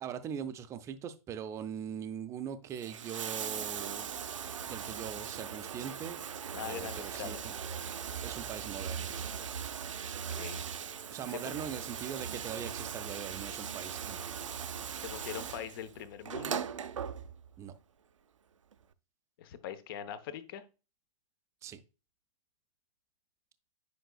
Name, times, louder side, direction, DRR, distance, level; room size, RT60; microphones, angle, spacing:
voice 1, 0.0-4.2 4.6-6.2 6.6-7.5 8.2-9.3 11.1-14.5 17.6-17.7 21.6-21.8, right 8 dB, 15° right, 0.6 m, -41 dB
Bathtub (filling or washing), 2.6-17.6 18.7-18.8, right 7 dB, 65° right, 0.6 m, -39 dB
voice 2, 6.5-7.5 10.3-10.7 11.3-11.4 15.0-16.6 19.4-20.6, left 9 dB, 40° left, 0.8 m, -42 dB
9.9 x 5.3 x 2.3 m
figure-of-eight pair, 110°, 18 cm